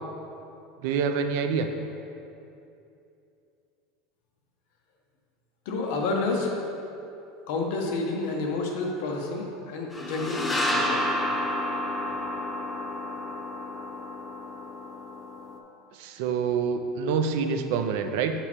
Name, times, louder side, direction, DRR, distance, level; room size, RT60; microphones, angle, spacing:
voice 1, 0.8-1.7 16.0-18.3, right 6 dB, 55° right, 6 dB, 0.4 m, -26 dB
voice 2, 5.6-6.6 7.5-11.0, left 3 dB, 55° left, 0 dB, 0.9 m, -29 dB
sound 1, 9.9-15.6, left 1 dB, 10° left, 0.4 m, -30 dB
6.9 x 4.3 x 4.3 m, 2.7 s
supercardioid pair, 175°, 0 cm